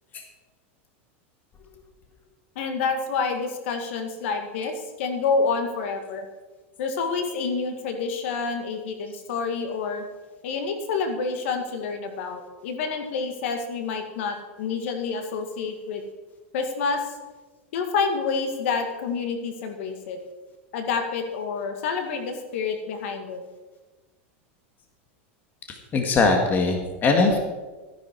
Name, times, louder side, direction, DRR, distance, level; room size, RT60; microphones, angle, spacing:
voice 1, 2.6-6.3 6.8-10.0 10.4-16.0 16.5-17.0 17.7-20.2 20.7-23.4, left 5 dB, 70° left, 6 dB, 2.0 m, -28 dB
voice 2, 25.9-27.4, left 3 dB, 25° left, 3 dB, 1.8 m, -20 dB
14.0 x 10.5 x 4.7 m, 1.2 s
supercardioid pair, 140°, 7 cm